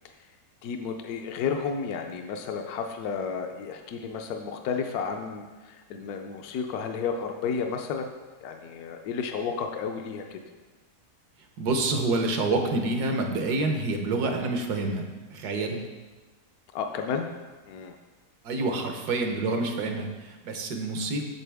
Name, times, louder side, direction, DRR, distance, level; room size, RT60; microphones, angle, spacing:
voice 1, 0.6-8.1 8.4-10.4 16.7-17.3 17.7-18.0, left 6 dB, 75° left, 4 dB, 1.1 m, -32 dB
voice 2, 11.6-15.8 18.4-21.3, right 2 dB, 80° right, 4 dB, 1.5 m, -27 dB
8.6 x 6.9 x 3.4 m, 1.3 s
omnidirectional pair, 1.7 m